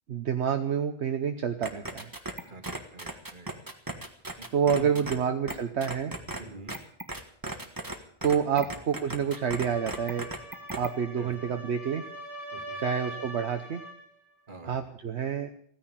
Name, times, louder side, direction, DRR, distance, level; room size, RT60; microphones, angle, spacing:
voice 1, 0.1-2.1 4.5-6.1 8.2-10.3 10.7-12.0 12.8-13.8 14.6-15.5, right 7 dB, 70° right, 6 dB, 1.2 m, -28 dB
sound 1, 1.6-5.1 5.5-5.6 5.8-6.4 6.7-8.0 8.2-10.9, right 1 dB, 20° right, 1.5 m, -36 dB
voice 2, 2.5-3.5 4.4-4.5 4.7-5.3 6.4-6.8 11.2-11.5 12.5-12.8 14.5-14.9, right 2 dB, 45° right, 6 dB, 2.2 m, -46 dB
sound 2, 9.2-14.1, right 1 dB, 85° left, 5.2 m, -43 dB
16.0 x 10.0 x 8.9 m, 0.65 s
omnidirectional pair, 1.2 m